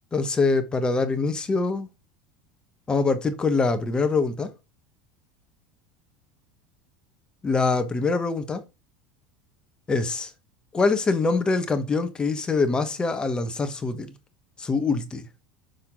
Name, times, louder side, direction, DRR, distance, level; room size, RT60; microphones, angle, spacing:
voice 1, 0.1-1.9 2.9-4.5 7.4-8.6 9.9-10.3 10.7-14.1 14.6-15.3, left 3 dB, 20° left, 1.2 m, -24 dB
6.5 x 3.6 x 6.0 m
supercardioid pair, 120°, 5 cm